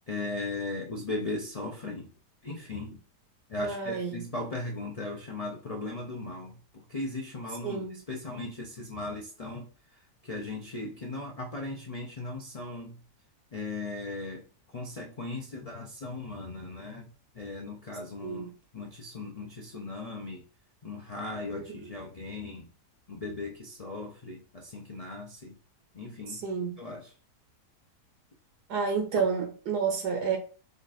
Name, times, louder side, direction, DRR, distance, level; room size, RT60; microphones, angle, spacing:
voice 1, 0.1-2.1 2.4-3.0 3.5-9.7 10.2-13.0 13.5-14.4 14.7-17.1 17.3-20.4 20.8-22.7 23.1-25.6 25.9-26.4 26.8-27.1, left 2 dB, 55° left, 0.4 m, -37 dB
voice 2, 3.6-4.3 7.6-8.0 18.2-18.5 21.5-21.6 26.3-26.8 28.7-30.4, right 6 dB, 75° right, 1.4 m, -30 dB
5.0 x 2.5 x 4.1 m
omnidirectional pair, 1.8 m